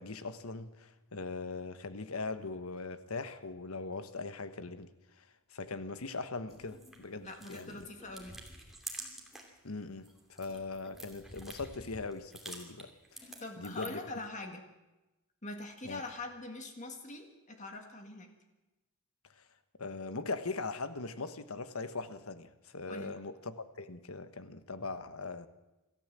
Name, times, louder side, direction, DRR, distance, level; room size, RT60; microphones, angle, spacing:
voice 1, 0.0-4.9 5.2-5.3 5.5-7.9 9.6-13.3 13.6-14.0 15.8-16.0 19.8-25.5, left 3 dB, 80° left, 1.3 m, -40 dB
sound 1, 6.5-9.6 9.9-14.1, right 1 dB, ahead, 2.8 m, -49 dB
voice 2, 7.2-8.4 13.4-14.6 15.4-18.3 22.9-23.2, left 2 dB, 35° left, 1.9 m, -43 dB
26.5 x 13.5 x 7.6 m
head